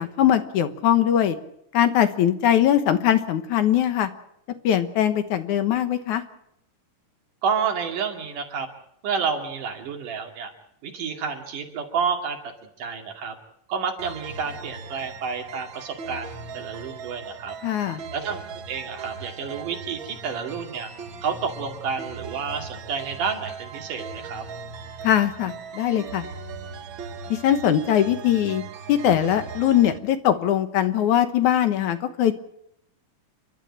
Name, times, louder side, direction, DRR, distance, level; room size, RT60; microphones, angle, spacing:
voice 1, 0.0-1.4 1.7-4.1 4.6-6.2 17.6-18.0 25.0-26.2 27.3-28.6 28.9-32.4, left 10 dB, 70° left, 9 dB, 2.5 m, -21 dB
voice 2, 7.4-8.7 9.0-10.5 10.8-12.4 12.8-13.4 13.7-17.6 18.1-20.9 21.2-24.4, right 6 dB, 70° right, 3 dB, 3.9 m, -29 dB
sound 1, 14.0-30.0, right 5 dB, 50° right, 1.5 m, -39 dB
29.5 x 12.0 x 8.7 m, 0.74 s
omnidirectional pair, 3.8 m